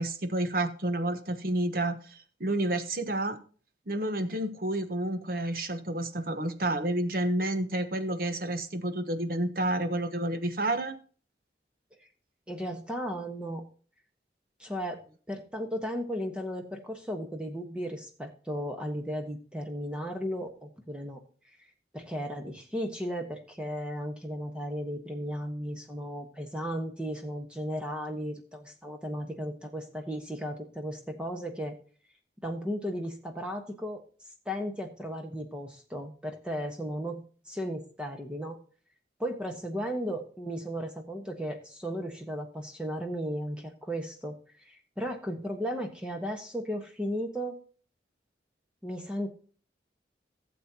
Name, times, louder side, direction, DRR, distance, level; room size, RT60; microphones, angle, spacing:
voice 1, 0.0-3.4 3.9-11.0, right 1 dB, 50° right, 9 dB, 1.1 m, -30 dB
voice 2, 12.5-13.6 14.6-15.0 15.3-21.2 21.9-31.7 32.4-34.0 34.4-37.2 37.4-38.6 39.2-47.6 48.8-49.3, equal, 5° right, 3 dB, 1.2 m, -35 dB
15.5 x 7.6 x 2.9 m, 0.40 s
head